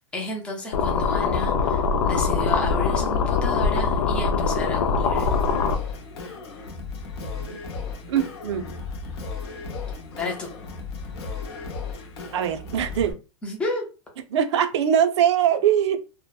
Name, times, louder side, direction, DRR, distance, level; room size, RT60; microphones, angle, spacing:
voice 1, 0.1-5.3 10.1-10.5 13.4-13.8, left 2 dB, 5° left, 0.4 m, -32 dB
sound 1, 0.7-5.8, left 5 dB, 70° left, 0.4 m, -22 dB
Singing, 5.1-13.1, left 4 dB, 50° left, 0.7 m, -35 dB
voice 2, 7.2-7.6 8.1-8.7 12.3-13.2 14.3-16.0, right 9 dB, 55° right, 0.5 m, -22 dB
2.6 x 2.1 x 2.2 m
supercardioid pair, 165°, 17 cm